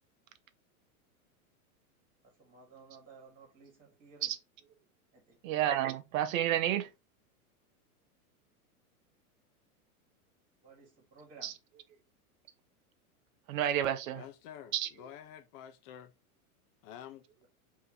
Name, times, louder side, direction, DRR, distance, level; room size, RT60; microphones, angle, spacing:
voice 1, 2.2-4.3 5.1-5.4 10.6-11.5, right 4 dB, 20° right, 1.5 m, -56 dB
voice 2, 5.4-6.8 11.4-11.5 13.5-14.2 14.7-14.9, right 11 dB, 65° right, 0.7 m, -30 dB
voice 3, 14.1-16.1 16.8-17.2, left 10 dB, 40° left, 0.6 m, -49 dB
2.8 x 2.8 x 3.7 m
hypercardioid pair, 115°, 44 cm